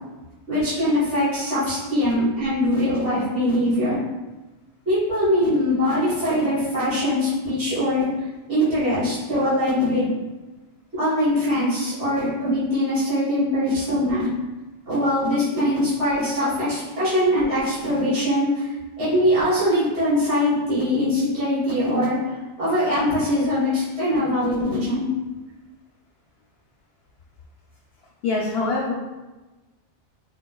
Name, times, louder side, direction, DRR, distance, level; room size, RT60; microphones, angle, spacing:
voice 1, 0.5-4.0 4.9-10.1 11.0-14.3 14.9-18.7 19.0-22.2 22.6-25.1, left 1 dB, 80° right, -11 dB, 1.9 m, -22 dB
voice 2, 28.2-28.9, left 3 dB, 65° left, -2 dB, 0.7 m, -23 dB
3.7 x 2.9 x 2.2 m, 1.1 s
omnidirectional pair, 1.2 m